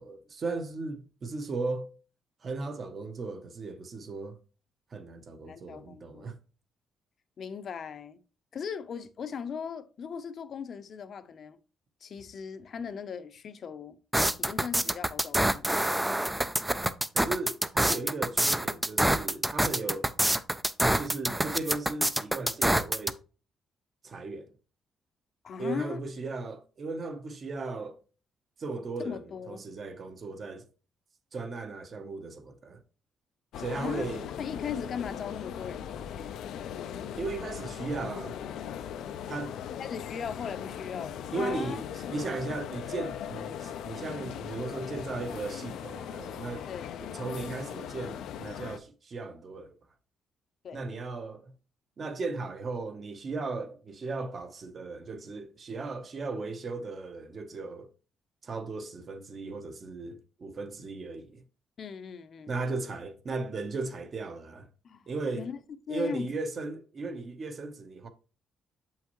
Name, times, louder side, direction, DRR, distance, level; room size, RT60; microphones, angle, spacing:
voice 1, 0.0-1.9 2.4-4.4 4.9-6.4 17.1-20.1 21.0-23.2 24.0-24.5 25.6-28.0 28.6-29.2 29.5-30.7 31.3-32.8 33.6-34.3 37.2-38.4 39.3-39.5 41.3-46.7 47.0-49.7 50.7-51.5 52.0-57.9 58.4-61.4 62.5-64.7 65.1-65.5 65.9-68.1, right 3 dB, 35° right, 0.9 m, -36 dB
voice 2, 5.4-6.3 7.4-8.2 8.5-11.6 12.0-14.0 14.4-16.2 25.4-26.0 29.0-29.6 33.8-34.1 34.4-36.4 39.8-41.8 46.7-47.1 50.6-50.8 61.8-62.6 64.8-65.1 65.3-65.6 65.9-66.3, left 7 dB, 45° left, 0.7 m, -38 dB
sound 1, 14.1-23.1, right 1 dB, 5° right, 0.4 m, -26 dB
sound 2, 33.5-48.8, left 9 dB, 90° left, 0.6 m, -39 dB
7.7 x 5.7 x 3.0 m
cardioid pair, 155°, 0 cm